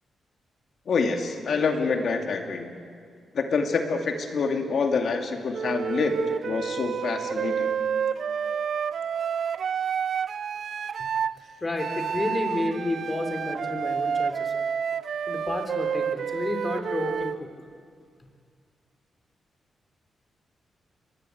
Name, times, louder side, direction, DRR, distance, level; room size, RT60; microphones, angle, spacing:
voice 1, 0.9-2.7 3.3-6.2 6.4-7.7, left 4 dB, 65° left, 5 dB, 2.4 m, -26 dB
Wind instrument woodwind instrument, 5.5-11.4 11.8-17.4, right 7 dB, 65° right, 0.6 m, -29 dB
voice 2, 11.6-14.5 15.3-17.3, left 2 dB, 30° left, 5 dB, 3.6 m, -30 dB
23.5 x 20.5 x 8.0 m, 2.2 s
cardioid pair, 65°, 0 cm